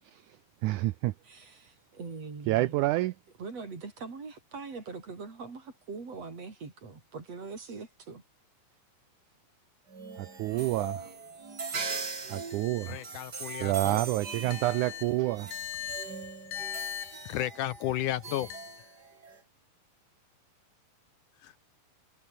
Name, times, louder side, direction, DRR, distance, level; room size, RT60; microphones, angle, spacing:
voice 1, 0.6-1.1 2.5-3.1 10.2-11.0 12.3-13.0 13.6-15.5, right 17 dB, 75° right, 1.9 m, -28 dB
voice 2, 1.3-2.7 3.4-8.2, right 4 dB, 45° right, 5.6 m, -42 dB
sound 1, 9.9-19.4, right 4 dB, 30° right, 2.9 m, -41 dB
voice 3, 12.9-14.0 14.5-14.6 15.5-16.1 16.5-18.6, left 13 dB, 75° left, 2.2 m, -34 dB
omnidirectional pair, 4.1 m